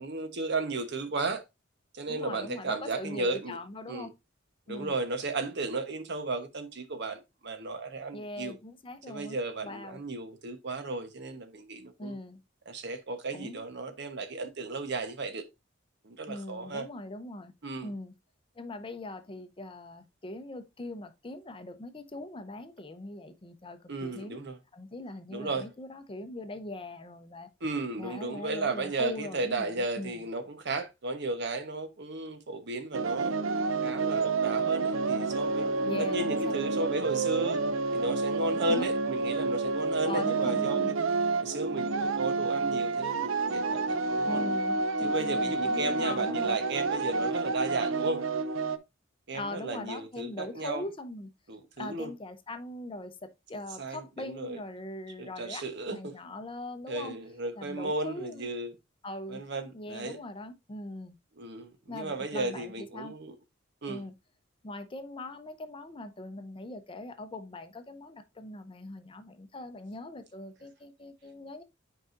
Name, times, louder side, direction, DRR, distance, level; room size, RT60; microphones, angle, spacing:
voice 1, 0.0-1.4 1.9-3.6 3.9-4.1 4.7-8.5 9.1-12.2 12.7-15.4 16.0-16.9 17.6-17.9 23.9-24.6 25.3-25.7 27.6-33.3 33.8-35.7 36.1-37.6 37.9-41.0 41.4-44.4 45.0-48.2 49.3-50.8 51.5-52.1 53.8-54.6 55.2-56.2 56.9-58.7 59.3-60.2 61.4-63.3 63.8-64.0, right 3 dB, 60° right, 1.0 m, -34 dB
voice 2, 2.1-4.1 4.7-5.0 8.1-9.4 9.6-10.0 12.0-12.4 13.3-13.6 16.3-17.5 17.8-18.1 18.6-24.4 24.7-27.5 28.0-30.3 35.8-36.4 38.7-38.9 40.0-40.9 44.3-46.6 49.3-51.3 51.8-57.2 57.5-58.5 59.0-59.4 59.7-61.2 61.9-63.1 63.9-64.1 64.6-71.6, left 2 dB, 25° left, 0.6 m, -41 dB
sound 1, 32.9-48.8, right 3 dB, 80° right, 0.6 m, -29 dB
9.1 x 4.8 x 2.5 m
head